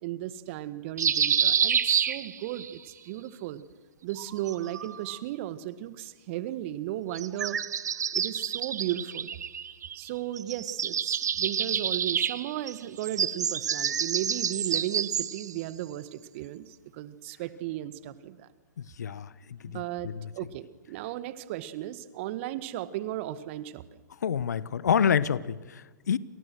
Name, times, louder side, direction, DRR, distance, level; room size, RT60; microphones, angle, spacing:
voice 1, 0.0-3.6 4.0-7.6 8.1-9.3 9.9-18.5 19.7-20.1 20.3-23.8, right 13 dB, 45° right, 1.8 m, -35 dB
sound 1, 1.0-2.7 4.1-5.2 7.1-10.1 10.4-15.5, right 8 dB, 65° right, 1.2 m, -28 dB
voice 2, 19.0-20.3 24.2-26.2, left 7 dB, 65° left, 1.2 m, -28 dB
29.5 x 28.0 x 6.4 m
figure-of-eight pair, 115°, 10 cm